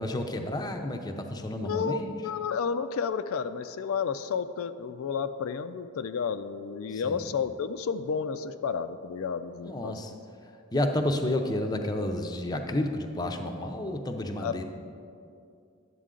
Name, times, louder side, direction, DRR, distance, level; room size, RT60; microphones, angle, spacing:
voice 1, 0.0-2.1 6.9-7.2 9.6-10.1 10.7-14.6, left 1 dB, 20° left, 4 dB, 0.6 m, -30 dB
voice 2, 1.6-9.9 14.4-14.6, left 6 dB, 80° left, 11 dB, 0.4 m, -31 dB
11.0 x 8.2 x 3.8 m, 2.5 s
head